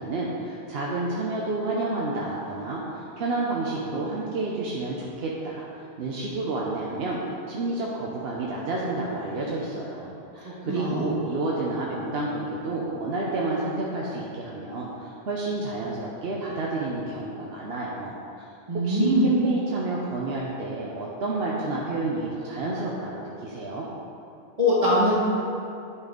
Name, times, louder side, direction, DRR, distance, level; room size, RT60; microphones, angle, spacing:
voice 1, 0.0-7.2 7.5-18.4 18.8-23.9, right 2 dB, 70° right, -4 dB, 1.1 m, -30 dB
voice 2, 10.4-11.1 18.7-19.2 24.6-25.1, equal, 35° right, -7 dB, 1.5 m, -22 dB
9.9 x 4.1 x 5.1 m, 2.6 s
omnidirectional pair, 1.1 m